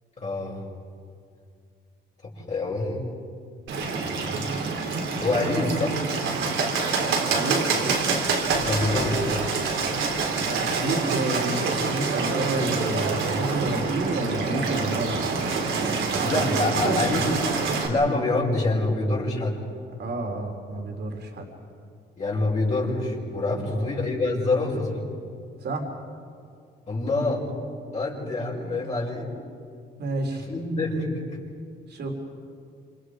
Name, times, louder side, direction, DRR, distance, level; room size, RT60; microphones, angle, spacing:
voice 1, 0.2-0.6 2.2-3.1 3.8-4.5 5.2-6.0 8.6-9.5 16.2-17.3 17.9-19.6 22.2-25.0 26.9-27.4 27.9-29.3 30.3-31.4, left 2 dB, 35° left, -5 dB, 5.9 m, -26 dB
Bird, 3.7-17.9, right 4 dB, 75° right, 3.4 m, -26 dB
voice 2, 7.3-7.9 10.3-17.2 20.0-21.5 23.6-23.9 25.6-25.9 30.0-30.5 31.9-32.1, right 2 dB, 55° right, 2 dB, 3.7 m, -30 dB
27.5 x 27.5 x 5.0 m, 2.3 s
cardioid pair, 90°, 20 cm